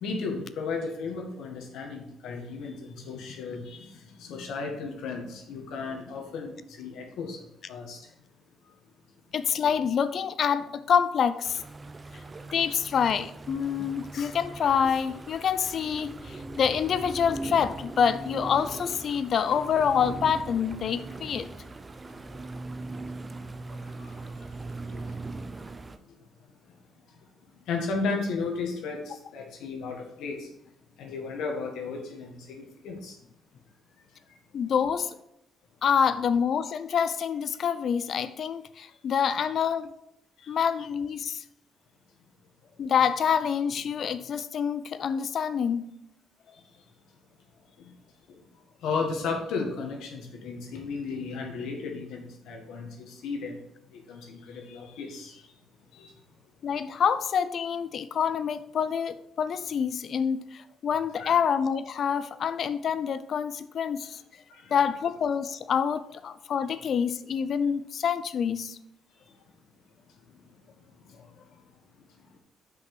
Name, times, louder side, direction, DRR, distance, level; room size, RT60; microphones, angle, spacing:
voice 1, 0.0-7.4 7.7-8.0 22.3-22.4 24.0-25.0 27.7-30.5 31.0-33.2 40.4-40.5 47.8-47.9 48.3-48.4 48.8-53.6 53.9-55.5 55.9-56.1 61.1-61.3 64.5-64.7, left 4 dB, 85° left, 2 dB, 1.7 m, -34 dB
voice 2, 9.3-11.6 12.5-21.5 34.5-35.1 35.8-39.9 40.5-41.4 42.8-45.9 56.6-64.2 64.7-68.8, left 7 dB, 60° left, 13 dB, 0.6 m, -27 dB
sound 1, 11.4-26.0, right 3 dB, 25° right, 0.6 m, -40 dB
5.8 x 5.3 x 6.1 m, 0.81 s
cardioid pair, 90°, 0 cm